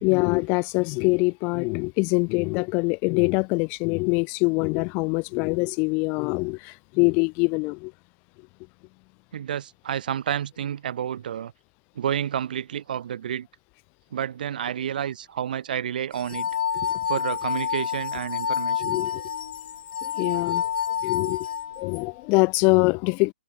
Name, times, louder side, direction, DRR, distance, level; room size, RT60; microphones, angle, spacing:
voice 1, 0.0-7.9 18.8-19.2 20.0-20.7 21.0-21.5 21.8-23.3, left 31 dB, 35° left, 3.9 m, -24 dB
voice 2, 9.3-11.5 11.9-13.5 14.1-16.5 17.1-19.0, right 9 dB, 65° right, 2.8 m, -30 dB
sound 1, 16.2-22.0, left 8 dB, 70° left, 1.5 m, -28 dB
hypercardioid pair, 145°, 5 cm